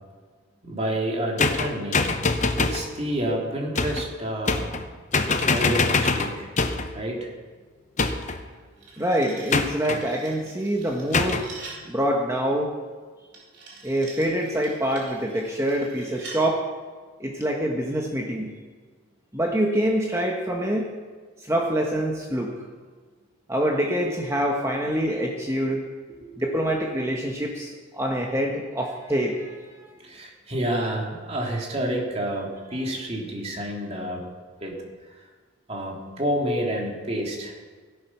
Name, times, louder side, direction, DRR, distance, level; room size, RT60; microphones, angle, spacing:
voice 1, 0.6-2.2 2.6-4.8 5.5-6.5 6.9-7.3 26.2-26.4 30.0-34.3 34.6-34.7 35.7-37.5, right 1 dB, 30° right, -1 dB, 2.8 m, -29 dB
sound 1, 1.4-2.9 3.8-4.1 4.5-4.9 5.1-6.9 8.0-8.5 9.5-10.0 11.1-11.5, left 3 dB, 35° left, 0.9 m, -24 dB
sound 2, 8.5-11.9 13.3-16.4, right 4 dB, 55° right, 4.0 m, -44 dB
voice 2, 9.0-11.5 11.9-12.7 13.8-16.6 17.2-18.5 19.3-20.9 21.4-22.5 23.5-25.8 26.4-29.8 32.7-32.8, equal, 15° right, 0 dB, 1.2 m, -25 dB
16.5 x 10.5 x 5.9 m, 1.5 s
head